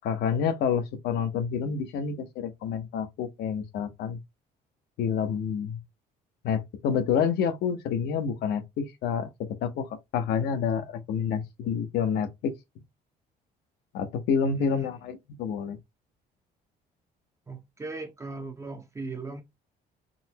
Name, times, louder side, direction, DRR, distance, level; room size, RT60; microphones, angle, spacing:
voice 1, 0.0-4.2 5.0-5.8 6.4-9.9 10.1-12.5 13.9-15.8, left 7 dB, 75° left, 0.7 m, -28 dB
voice 2, 14.4-15.0 17.5-19.4, right 3 dB, 15° right, 0.5 m, -37 dB
3.8 x 2.1 x 2.8 m
cardioid pair, 110°, 17 cm